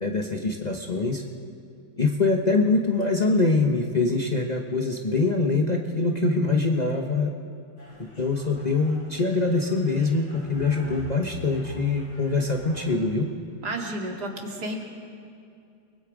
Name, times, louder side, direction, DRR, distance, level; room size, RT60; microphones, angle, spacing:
voice 1, 0.0-1.2 2.0-7.3 8.0-13.3, left 3 dB, 30° left, 1 dB, 1.1 m, -24 dB
sound 1, 7.8-13.1, left 2 dB, 75° left, 7.4 m, -45 dB
voice 2, 13.6-14.8, right 1 dB, 70° right, 1 dB, 2.9 m, -32 dB
29.5 x 20.5 x 5.0 m, 2.4 s
omnidirectional pair, 1.8 m